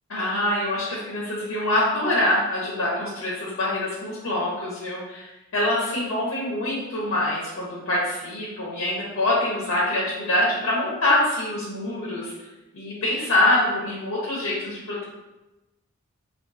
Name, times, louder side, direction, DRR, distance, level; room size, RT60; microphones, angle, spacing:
voice 1, 0.1-12.3 12.7-15.1, left 1 dB, 85° left, -6 dB, 0.8 m, -25 dB
3.6 x 2.5 x 2.6 m, 1.0 s
head